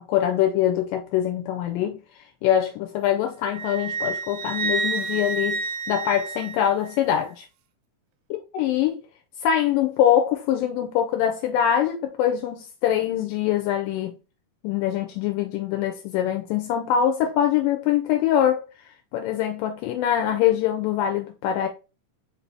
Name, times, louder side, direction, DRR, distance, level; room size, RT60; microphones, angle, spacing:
voice 1, 0.1-2.0 2.4-5.6 5.9-7.5 8.5-9.0 9.4-14.2 14.6-18.6 19.1-21.7, left 10 dB, 80° left, 2.1 m, -23 dB
Wind instrument woodwind instrument, 3.5-7.0, right 4 dB, 80° right, 2.1 m, -29 dB
5.1 x 2.6 x 3.2 m
omnidirectional pair, 3.9 m